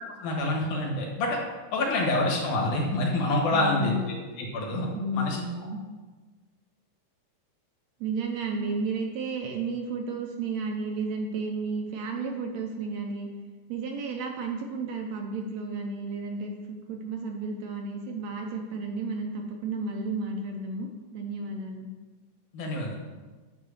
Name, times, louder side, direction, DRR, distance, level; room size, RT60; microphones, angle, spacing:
voice 1, 0.2-1.4 1.7-5.4 22.5-23.0, left 2 dB, 80° left, -1 dB, 3.0 m, -27 dB
voice 2, 3.5-4.1 5.0-5.8 8.0-13.3 13.7-21.9, right 3 dB, 70° right, 2 dB, 1.8 m, -32 dB
9.1 x 3.7 x 6.4 m, 1.3 s
omnidirectional pair, 3.5 m